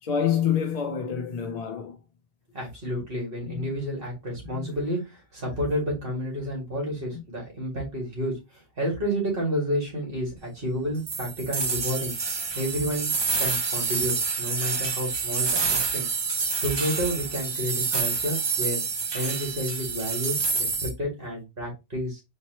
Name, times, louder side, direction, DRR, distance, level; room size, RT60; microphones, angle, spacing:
voice 1, 0.0-2.0 3.5-3.7 4.5-4.7 7.1-7.2, left 8 dB, 50° left, 0.5 m, -27 dB
voice 2, 2.5-8.3 8.8-12.1 12.5-16.1 16.6-18.8 19.1-22.2, equal, 50° right, 2.1 m, -30 dB
sound 1, 11.1-20.9, right 4 dB, 30° right, 0.5 m, -28 dB
4.4 x 3.0 x 2.9 m
omnidirectional pair, 1.2 m